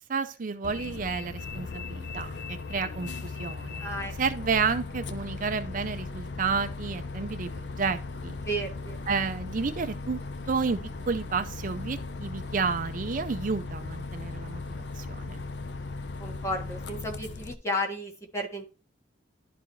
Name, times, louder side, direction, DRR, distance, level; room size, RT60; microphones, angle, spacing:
voice 1, 0.1-3.9 4.2-8.3 9.1-10.2 10.5-10.8 11.1-15.4, right 5 dB, 50° right, 0.5 m, -31 dB
Bus, 0.6-17.5, left 3 dB, 75° left, 0.6 m, -37 dB
voice 2, 3.8-4.1 8.4-9.1 16.2-18.7, equal, 15° left, 1.4 m, -33 dB
12.0 x 4.1 x 3.0 m
head